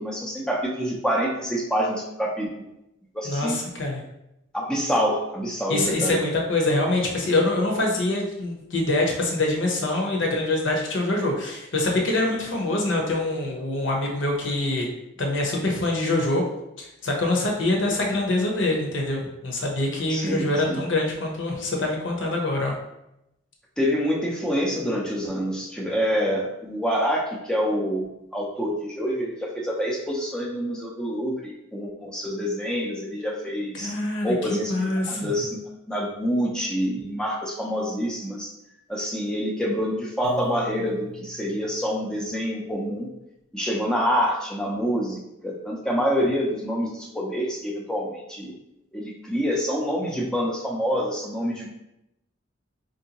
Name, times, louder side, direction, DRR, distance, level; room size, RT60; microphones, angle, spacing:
voice 1, 0.0-2.5 3.1-3.6 4.5-6.2 20.1-20.8 23.8-28.0 28.3-33.9 34.2-34.7 35.1-35.6 35.9-38.5 38.9-43.1 43.5-48.5 48.9-51.7, equal, 5° left, -2 dB, 0.5 m, -26 dB
voice 2, 3.2-4.0 5.7-14.9 15.2-16.4 16.8-22.7 33.7-35.3, left 2 dB, 65° left, 0 dB, 0.9 m, -25 dB
Piano, 40.2-42.4, left 1 dB, 55° right, 0.6 m, -40 dB
4.7 x 2.6 x 2.9 m, 0.86 s
head